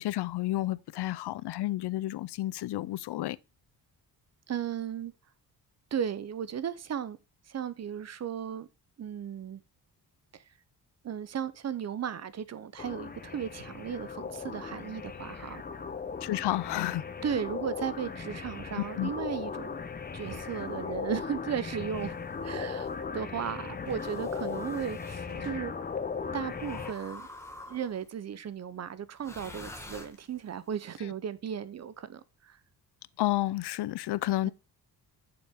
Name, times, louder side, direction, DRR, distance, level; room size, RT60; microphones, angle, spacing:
voice 1, 0.0-3.4 16.2-17.0 19.0-19.1 33.2-34.5, left 15 dB, 75° left, 0.6 m, -31 dB
voice 2, 4.5-5.1 5.9-7.2 7.5-8.7 9.0-9.6 10.3-10.4 11.0-15.6 17.2-19.7 20.1-22.2 22.4-25.7 26.3-27.3 27.7-32.6, right 8 dB, 40° right, 0.7 m, -35 dB
sound 1, 12.8-26.9, left 5 dB, 25° left, 0.7 m, -38 dB
sound 2, 20.1-20.8 21.8-23.0 24.0-25.2 26.5-28.1 29.2-30.6, left 2 dB, 5° left, 1.2 m, -48 dB
sound 3, 20.2-20.5 21.9-23.4 23.8-24.2 24.5-24.6 24.9-26.5, right 4 dB, 85° right, 2.3 m, -50 dB
8.6 x 7.0 x 3.5 m
wide cardioid pair, 170°, 40 cm